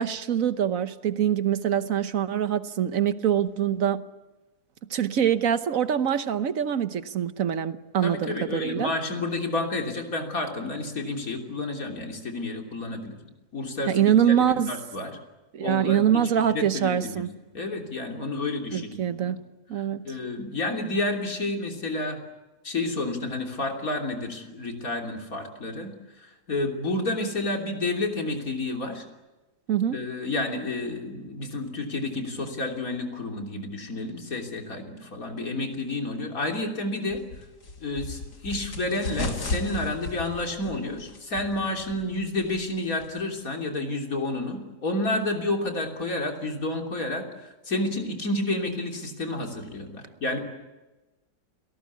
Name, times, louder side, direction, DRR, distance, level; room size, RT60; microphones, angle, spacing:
voice 1, 0.0-4.0 4.9-8.9 13.9-14.7 15.5-17.3 18.7-19.4 19.7-20.1 29.7-30.0, right 9 dB, 60° right, 1.3 m, -24 dB
voice 2, 8.0-13.2 13.5-14.0 14.4-15.1 15.6-17.3 17.5-19.4 19.8-22.2 22.6-25.9 26.2-29.1 29.9-37.2 37.8-50.4, left 2 dB, 60° left, 3.6 m, -30 dB
sound 1, 37.1-43.2, left 3 dB, 85° left, 3.1 m, -36 dB
29.5 x 19.0 x 8.4 m
omnidirectional pair, 1.7 m